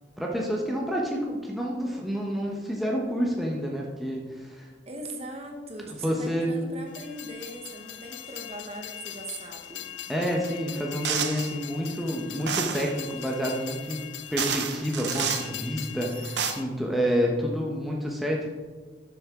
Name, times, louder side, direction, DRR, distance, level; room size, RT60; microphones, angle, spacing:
voice 1, 0.2-4.7 6.0-6.6 10.1-14.0 14.3-18.5, equal, ahead, -2 dB, 1.0 m, -29 dB
voice 2, 4.9-9.9, right 1 dB, 35° right, 2 dB, 1.2 m, -40 dB
Train, 6.9-16.6, left 12 dB, 90° left, 0.5 m, -41 dB
sound 1, 11.0-11.5 12.5-12.9 13.9-14.0 14.4-15.5 16.1-16.5, right 7 dB, 70° right, 0.8 m, -29 dB
12.0 x 6.8 x 3.7 m, 1.4 s
head